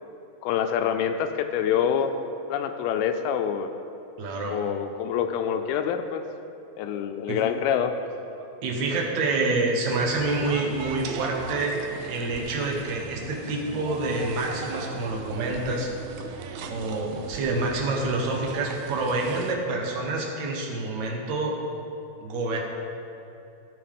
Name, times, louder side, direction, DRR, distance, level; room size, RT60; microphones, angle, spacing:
voice 1, 0.4-2.1 2.5-3.7 4.5-6.2 6.8-7.9, left 8 dB, 85° left, 7 dB, 2.4 m, -26 dB
voice 2, 4.2-4.6 7.3-7.5 8.4-15.9 16.6-21.6 22.2-22.6, right 2 dB, 60° right, 0 dB, 2.2 m, -27 dB
sound 1, 9.9-19.6, right 5 dB, 80° right, 2.4 m, -38 dB
17.0 x 7.0 x 3.6 m, 2.8 s
omnidirectional pair, 4.4 m